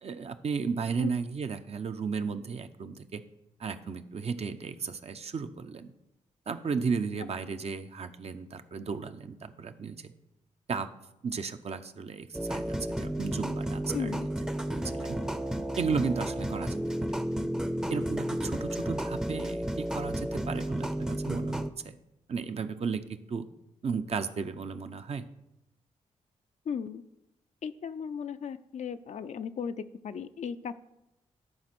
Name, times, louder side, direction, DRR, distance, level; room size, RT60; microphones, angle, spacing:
voice 1, 0.0-3.2 3.6-5.9 6.5-10.1 10.7-10.9 11.2-14.2 14.7-15.2 15.7-16.8 17.1-17.2 17.9-22.0 22.3-23.5 23.8-25.2, right 5 dB, 55° right, 8 dB, 0.7 m, -34 dB
sound 1, 12.3-21.7, right 1 dB, 5° right, 0.6 m, -32 dB
voice 2, 13.9-14.3 26.7-27.0 27.6-29.7 30.0-30.7, left 7 dB, 65° left, 11 dB, 0.5 m, -36 dB
11.0 x 4.4 x 6.0 m, 0.88 s
cardioid pair, 55°, 13 cm